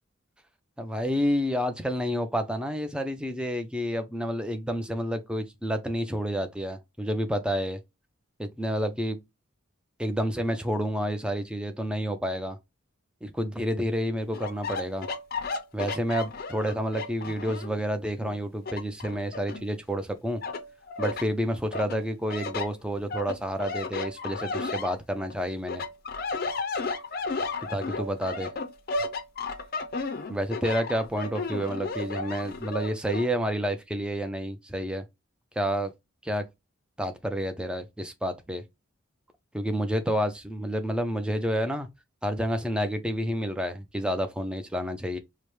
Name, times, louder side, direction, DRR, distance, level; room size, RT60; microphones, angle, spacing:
voice 1, 0.8-7.8 8.4-9.2 10.0-12.6 13.2-15.1 15.7-20.4 21.0-25.8 27.7-28.5 30.3-35.0 35.6-35.9 36.2-36.4 37.0-38.6 39.5-41.9 42.2-45.2, equal, 5° right, 0.5 m, -29 dB
sound 1, 14.3-17.8 18.2-20.0 20.4-21.3 21.7-25.3 25.7-33.3, left 3 dB, 45° left, 0.5 m, -34 dB
4.9 x 2.1 x 3.0 m
head